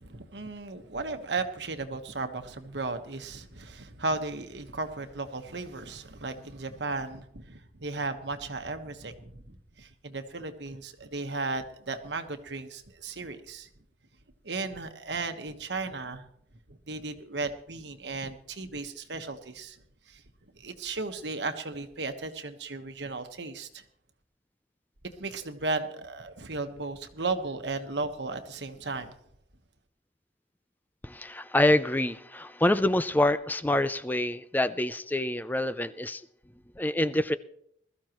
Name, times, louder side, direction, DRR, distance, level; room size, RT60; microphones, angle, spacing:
voice 1, 0.0-13.7 14.4-16.2 16.7-20.2 20.5-23.8 25.0-29.2, right 3 dB, 75° right, 7 dB, 1.3 m, -35 dB
voice 2, 31.0-36.2 36.8-37.4, left 1 dB, 10° left, 13 dB, 0.4 m, -26 dB
20.5 x 14.0 x 3.1 m, 0.69 s
head